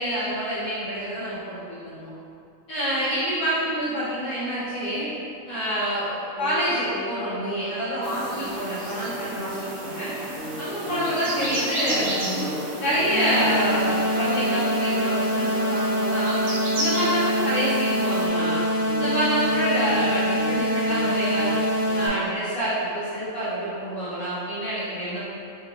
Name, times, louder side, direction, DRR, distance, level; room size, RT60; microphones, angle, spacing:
voice 1, 0.0-2.1 2.7-5.1 5.5-10.1 10.6-12.5 12.8-16.4 16.7-18.6 18.9-21.6 21.9-25.2, equal, 90° left, -15 dB, 2.1 m, -27 dB
sound 1, 6.4-6.6 6.9-7.1 7.4-7.6 7.9-8.1 8.4-8.6 8.9-9.1 9.4-9.6 9.9-10.1 10.4-10.6 10.9-11.1 11.4-11.6 11.9-12.1 12.4-12.6 12.9-13.1 13.4-13.6 13.9-14.1 14.4-14.6 14.9-15.1 15.4-15.6 15.9-16.1 16.4-16.6 16.9-17.1 17.4-17.6 17.9-18.1 18.4-18.6 18.9-19.1 19.4-19.6 19.9-20.1 20.4-20.6 20.9-21.1 21.4-21.6 21.9-22.1, right 1 dB, 45° right, 0.8 m, -36 dB
sound 2, 8.0-18.3, right 1 dB, 65° right, 1.1 m, -33 dB
sound 3, 13.1-22.1, equal, 75° left, 1.1 m, -25 dB
4.3 x 2.5 x 3.0 m, 2.6 s
omnidirectional pair, 1.4 m